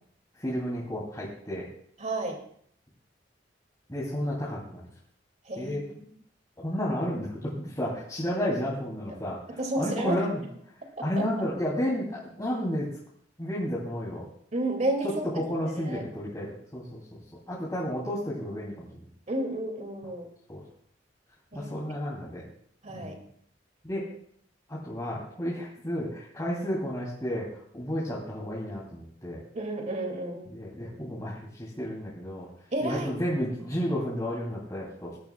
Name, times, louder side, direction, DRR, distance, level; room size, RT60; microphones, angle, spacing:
voice 1, 0.4-1.7 3.9-4.8 5.6-5.8 6.6-9.4 9.8-10.4 11.0-12.9 13.4-14.3 15.0-17.2 17.5-19.0 20.5-20.6 21.5-22.4 22.9-23.2 23.8-24.1 24.7-29.4 30.5-32.5 32.8-35.1, equal, 20° left, -6 dB, 2.9 m, -32 dB
voice 2, 2.0-2.4 5.5-6.0 9.6-10.3 11.0-11.1 14.5-15.2 15.9-16.0 19.3-20.3 21.5-21.8 22.8-23.2 29.5-30.5 32.7-33.1, right 1 dB, 40° right, 3 dB, 2.4 m, -31 dB
20.0 x 12.0 x 2.3 m, 0.63 s
head